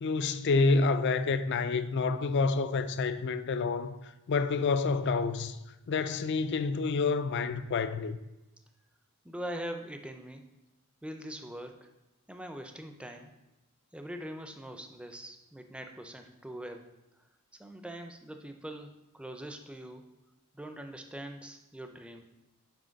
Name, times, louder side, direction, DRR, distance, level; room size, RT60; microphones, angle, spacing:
voice 1, 0.0-4.0 4.3-5.6 5.9-8.2, left 4 dB, 55° left, 0.4 m, -28 dB
voice 2, 9.2-10.5 11.0-11.9 12.3-13.3 13.9-16.9 17.6-20.1 20.5-22.2, right 1 dB, 5° right, 0.5 m, -42 dB
6.2 x 4.9 x 5.2 m
head